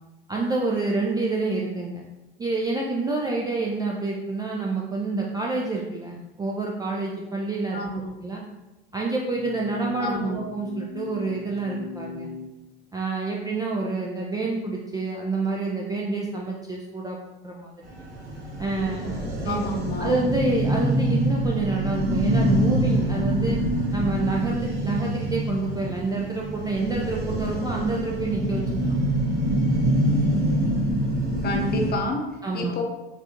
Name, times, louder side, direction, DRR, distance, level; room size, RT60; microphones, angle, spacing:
voice 1, 0.3-2.0 2.4-7.8 8.2-8.4 8.9-12.3 12.9-17.2 17.4-17.7 18.6-19.6 20.0-23.6 23.9-29.0 32.4-32.7, right 3 dB, 15° right, -3 dB, 0.3 m, -28 dB
voice 2, 7.7-8.1 10.0-10.4 19.4-20.2 31.4-32.2 32.5-32.8, left 1 dB, 30° left, 2 dB, 0.7 m, -28 dB
sound 1, 9.3-12.5, left 4 dB, 80° left, 0.8 m, -38 dB
sound 2, 17.9-31.9, right 1 dB, 75° right, 1.3 m, -25 dB
3.9 x 2.4 x 2.6 m, 1.0 s
hypercardioid pair, 75°, 32 cm